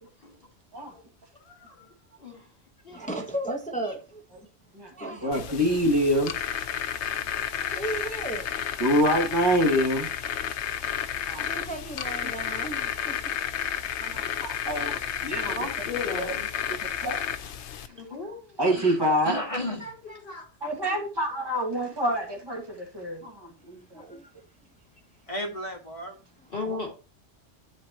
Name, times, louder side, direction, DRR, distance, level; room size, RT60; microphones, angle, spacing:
voice 1, 1.4-1.9 2.2-2.5 2.8-3.1 3.8-3.9 15.4-16.5 17.9-18.8 19.8-20.4 26.5-27.0, left 3 dB, 50° left, 3.0 m, -37 dB
voice 2, 2.9-4.2 4.9-5.4 7.7-8.5 11.5-13.2 20.6-20.9 23.9-24.3, right 1 dB, 5° left, 1.0 m, -35 dB
voice 3, 4.7-6.3 8.8-10.1 11.3-11.5 12.2-12.3 14.0-15.6 16.2-16.3 17.0-17.2 18.6-19.4 20.6-23.8, equal, 20° right, 2.0 m, -26 dB
sound 1, 5.3-17.9, left 9 dB, 80° left, 1.0 m, -32 dB
voice 4, 18.7-19.9 25.3-26.2, left 1 dB, 30° left, 1.9 m, -34 dB
11.0 x 4.5 x 2.9 m
omnidirectional pair, 1.1 m